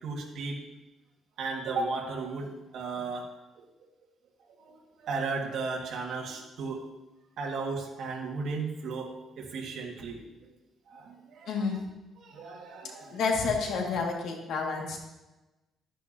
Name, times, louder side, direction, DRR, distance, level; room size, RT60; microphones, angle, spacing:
voice 1, 0.0-0.6 1.4-3.3 3.6-3.7 4.6-6.8 7.4-10.5 10.9-11.8 12.2-13.2, right 4 dB, 65° right, 0 dB, 1.9 m, -35 dB
voice 2, 11.5-11.8 13.1-15.0, left 4 dB, 70° left, 1 dB, 2.0 m, -29 dB
12.0 x 10.5 x 2.9 m, 1.1 s
cardioid pair, 150°, 0 cm